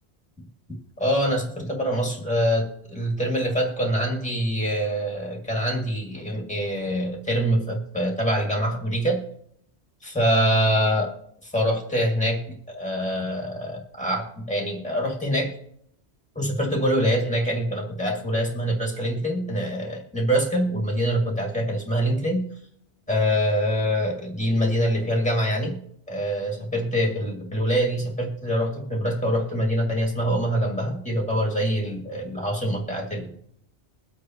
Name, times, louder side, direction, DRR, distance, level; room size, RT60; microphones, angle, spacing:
voice 1, 1.0-9.2 10.0-11.1 11.4-12.4 12.7-15.5 16.4-22.5 23.1-25.8 26.1-33.3, equal, 5° left, 0 dB, 2.4 m, -24 dB
22.0 x 8.4 x 3.1 m, 0.71 s
omnidirectional pair, 1.1 m